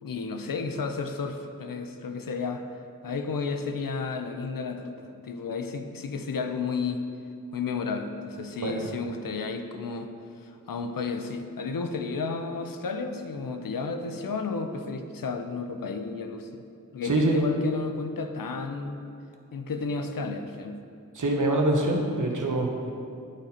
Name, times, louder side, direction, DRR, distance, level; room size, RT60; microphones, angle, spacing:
voice 1, 0.0-2.7 3.0-7.0 7.5-10.1 10.4-16.6 16.9-19.0 19.5-20.8, left 4 dB, 80° left, 6 dB, 0.6 m, -32 dB
voice 2, 17.0-17.4 21.1-22.9, right 2 dB, 65° right, 1 dB, 1.1 m, -25 dB
11.0 x 4.1 x 4.3 m, 2.5 s
wide cardioid pair, 65°, 33 cm